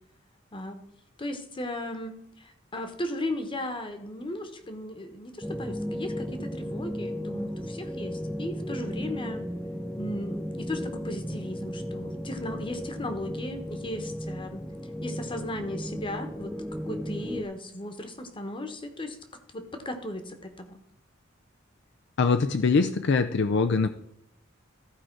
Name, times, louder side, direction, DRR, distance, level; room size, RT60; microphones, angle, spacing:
voice 1, 0.5-0.8 1.2-9.5 10.0-14.6 15.0-16.5 16.9-19.2 19.5-20.8, left 1 dB, 25° left, 7 dB, 1.1 m, -36 dB
sound 1, 5.4-17.4, equal, ahead, 0.6 m, -35 dB
voice 2, 22.2-23.9, left 4 dB, 60° left, 8 dB, 0.5 m, -23 dB
14.5 x 4.9 x 4.5 m, 0.78 s
head